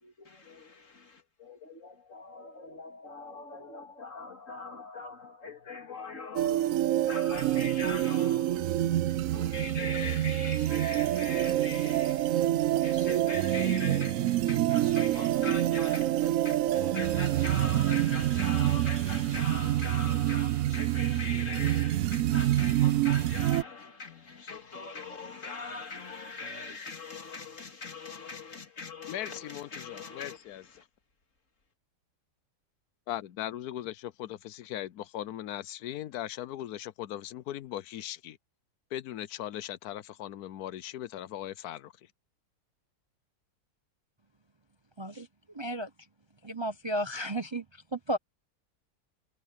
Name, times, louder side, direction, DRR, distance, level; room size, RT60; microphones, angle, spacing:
voice 1, 0.0-30.8, left 4 dB, 55° left, 2.6 m, -42 dB
sound 1, 6.4-23.6, right 13 dB, 70° right, 0.9 m, -27 dB
voice 2, 29.1-30.8 33.1-38.4 38.9-41.9, left 12 dB, 85° left, 1.2 m, -39 dB
voice 3, 45.0-45.9 46.4-48.2, right 1 dB, 30° right, 0.5 m, -34 dB
omnidirectional pair, 1.6 m